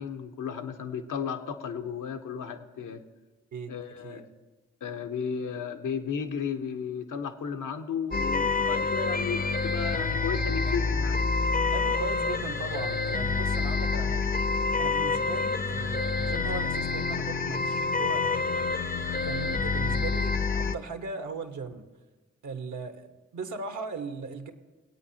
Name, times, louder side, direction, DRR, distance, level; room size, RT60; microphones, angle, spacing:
voice 1, 0.0-3.0 3.7-4.3 4.8-11.3, left 6 dB, 70° left, 6 dB, 1.0 m, -34 dB
sound 1, 8.1-20.8, left 4 dB, 30° left, 0.7 m, -27 dB
voice 2, 11.7-14.3 14.8-18.6 19.2-21.8 22.4-24.5, right 4 dB, 65° right, 6 dB, 1.3 m, -38 dB
20.0 x 8.7 x 2.9 m, 1.2 s
supercardioid pair, 40°, 32 cm